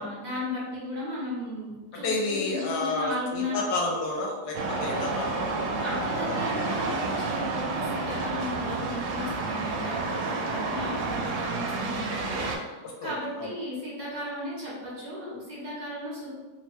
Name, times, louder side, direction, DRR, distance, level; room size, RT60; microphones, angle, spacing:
voice 1, 0.0-3.6 5.8-16.3, left 1 dB, 35° right, -8 dB, 0.7 m, -35 dB
voice 2, 1.9-5.6 12.8-13.1 13.4-13.5, left 3 dB, 80° left, -1 dB, 1.2 m, -30 dB
sound 1, 4.5-12.6, right 3 dB, 80° right, 1.1 m, -30 dB
2.9 x 2.1 x 3.1 m, 1.3 s
omnidirectional pair, 1.7 m